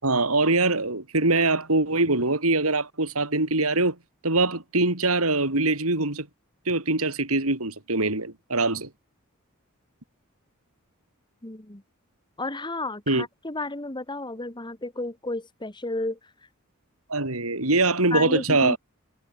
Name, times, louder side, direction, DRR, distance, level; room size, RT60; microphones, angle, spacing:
voice 1, 0.0-3.9 4.2-6.3 6.7-8.9 13.1-13.3 17.1-18.8, right 2 dB, 75° right, 4.9 m, -23 dB
voice 2, 11.4-11.8 12.4-16.2 18.1-18.8, left 2 dB, 20° left, 2.5 m, -32 dB
head